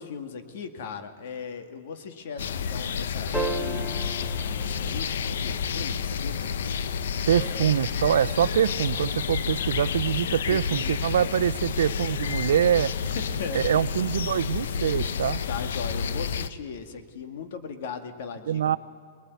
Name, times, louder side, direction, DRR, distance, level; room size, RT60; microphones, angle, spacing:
voice 1, 0.0-6.5 7.3-7.7 10.5-11.3 13.2-13.6 15.5-18.8, left 6 dB, 60° left, 7 dB, 2.1 m, -38 dB
sound 1, 2.4-16.5, left 6 dB, 80° left, 0.9 m, -30 dB
sound 2, 3.3-5.9 8.1-8.2, right 2 dB, ahead, 1.1 m, -34 dB
voice 2, 7.3-12.9 13.5-15.4 18.5-18.8, right 9 dB, 85° right, 16 dB, 0.6 m, -24 dB
22.0 x 20.0 x 9.5 m, 2.2 s
hypercardioid pair, 155°, 0 cm